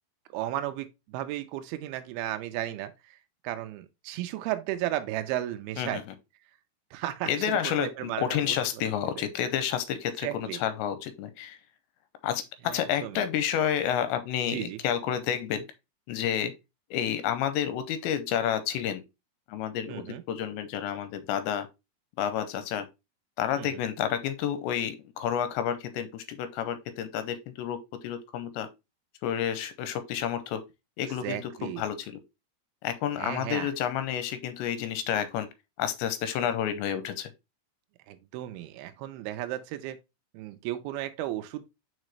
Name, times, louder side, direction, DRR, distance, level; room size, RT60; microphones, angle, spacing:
voice 1, 0.3-3.2 3.4-6.0 6.9-8.6 9.2-9.3 10.2-10.6 12.7-13.2 14.5-14.8 19.9-20.2 23.6-23.7 31.2-31.8 33.2-33.7 38.1-40.0 40.3-41.6, right 14 dB, 90° right, 2.2 m, -34 dB
voice 2, 7.3-11.6 12.2-15.6 16.1-16.5 16.9-19.0 19.5-21.7 22.2-22.9 23.4-28.7 29.2-30.6 31.0-32.2 32.8-35.5 35.8-37.3, left 9 dB, 85° left, 2.9 m, -30 dB
6.2 x 4.9 x 3.1 m
omnidirectional pair, 5.2 m